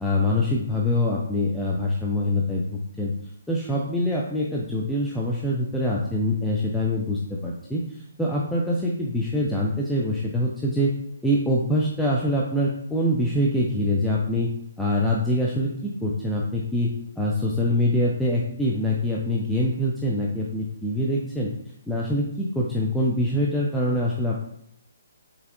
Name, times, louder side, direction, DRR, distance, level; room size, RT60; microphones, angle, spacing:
voice 1, 0.0-3.1 3.5-11.0 11.2-14.5 14.8-16.9 17.2-21.5 21.9-24.4, left 1 dB, ahead, -5 dB, 0.4 m, -24 dB
4.0 x 4.0 x 2.4 m, 0.71 s
figure-of-eight pair, 135°, 0 cm